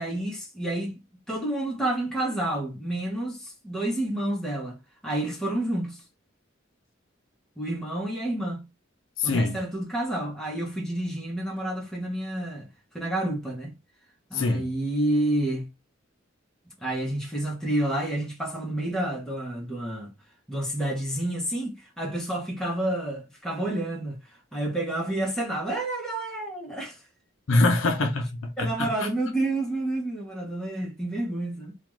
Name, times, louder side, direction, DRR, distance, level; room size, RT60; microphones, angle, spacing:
voice 1, 0.0-6.0 7.6-8.7 9.2-12.7 12.9-13.7 14.3-15.7 16.8-20.1 20.5-24.2 24.5-27.0 28.6-31.8, right 1 dB, 5° left, 0.8 m, -29 dB
voice 2, 9.2-9.6 14.3-14.7 27.5-29.1, left 2 dB, 75° left, 0.6 m, -24 dB
2.5 x 2.3 x 3.1 m
head